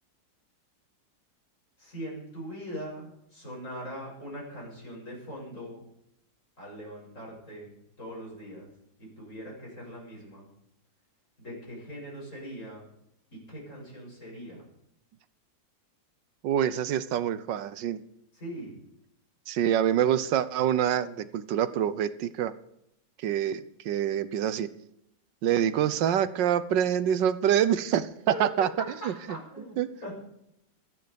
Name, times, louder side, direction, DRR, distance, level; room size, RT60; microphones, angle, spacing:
voice 1, 1.8-5.9 6.6-8.7 9.0-10.5 11.4-12.9 13.3-14.7 18.3-18.8 28.3-30.1, equal, 40° left, -3 dB, 8.1 m, -41 dB
voice 2, 16.4-18.0 19.5-22.5 23.2-24.7 25.4-28.1 28.4-28.7 29.8-29.9, right 10 dB, 75° right, 14 dB, 1.4 m, -26 dB
26.5 x 9.5 x 5.1 m, 0.77 s
omnidirectional pair, 2.0 m